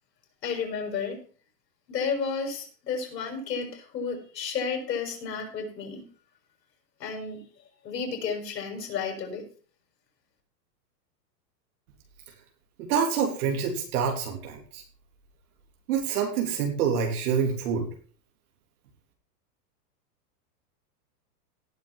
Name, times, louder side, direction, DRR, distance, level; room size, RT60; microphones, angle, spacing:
voice 1, 0.4-1.2 1.9-6.0 7.0-7.4 7.8-9.4, left 5 dB, 75° left, 3 dB, 6.2 m, -32 dB
voice 2, 12.8-14.8 15.9-17.9, right 6 dB, 60° right, 3 dB, 3.4 m, -27 dB
18.0 x 6.2 x 5.4 m, 0.40 s
supercardioid pair, 145°, 50 cm